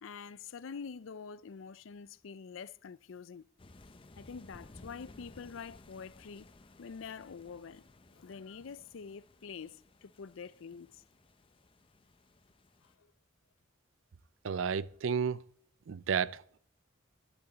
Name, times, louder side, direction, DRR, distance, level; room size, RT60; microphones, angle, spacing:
voice 1, 0.0-3.5 4.2-6.5 6.8-7.8 8.1-11.0 13.0-13.1, left 6 dB, 85° left, 0.5 m, -46 dB
sound 1, 3.6-13.0, left 2 dB, 25° left, 0.6 m, -58 dB
voice 2, 14.4-15.4 15.9-16.6, right 6 dB, 75° right, 0.4 m, -32 dB
11.5 x 10.5 x 4.0 m
head